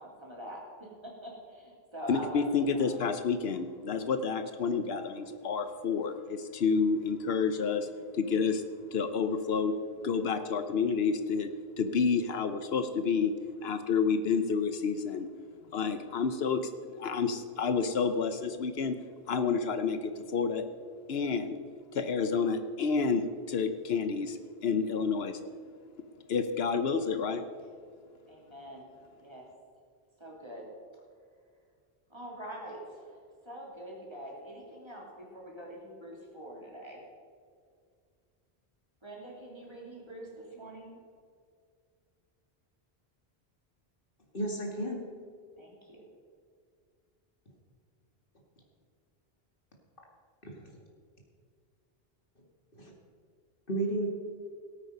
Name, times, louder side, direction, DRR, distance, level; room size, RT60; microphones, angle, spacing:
voice 1, 0.0-2.4 2.7-3.0 28.3-28.9 29.2-29.4 30.2-30.7 32.1-33.2 33.4-37.0 39.0-41.0 45.6-46.1, equal, 25° right, -3 dB, 3.2 m, -44 dB
voice 2, 2.1-9.7 10.0-11.5 11.8-13.3 13.6-15.3 15.7-19.0 19.3-20.7 21.1-21.6 21.9-25.4 26.3-27.4, left 5 dB, 80° left, 9 dB, 1.0 m, -29 dB
voice 3, 44.3-45.0 50.4-50.8 52.7-52.9 53.7-54.1, right 2 dB, 60° left, 0 dB, 2.4 m, -33 dB
18.0 x 8.8 x 5.4 m, 2.1 s
omnidirectional pair, 1.0 m